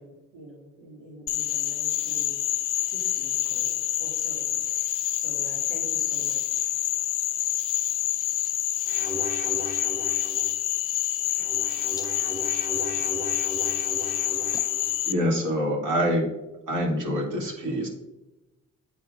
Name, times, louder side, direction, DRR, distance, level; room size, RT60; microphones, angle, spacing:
voice 1, 0.0-2.4 2.8-6.7, right 1 dB, 85° right, -7 dB, 2.0 m, -46 dB
Frog, 1.3-15.1, left 13 dB, 75° left, 0.5 m, -27 dB
sound 1, 8.9-10.5 11.2-14.9, equal, 25° right, 1.4 m, -37 dB
voice 2, 11.4-14.6, left 1 dB, 10° left, 7 dB, 0.5 m, -51 dB
voice 3, 15.1-16.3 16.7-17.9, equal, 65° right, -2 dB, 2.2 m, -25 dB
10.5 x 4.3 x 2.4 m, 1.0 s
cardioid pair, 70°, 32 cm